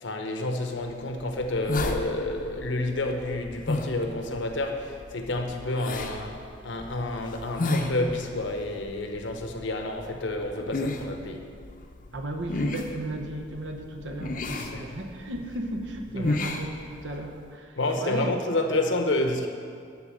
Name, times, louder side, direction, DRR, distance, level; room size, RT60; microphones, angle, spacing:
voice 1, 0.0-11.5 14.6-14.9 16.1-16.3 17.8-19.5, left 2 dB, 75° left, 5 dB, 0.9 m, -29 dB
sound 1, 0.8-17.4, left 2 dB, 45° left, 0.7 m, -34 dB
voice 2, 12.1-18.3, right 1 dB, 70° right, 4 dB, 0.9 m, -35 dB
10.5 x 4.0 x 7.4 m, 2.3 s
head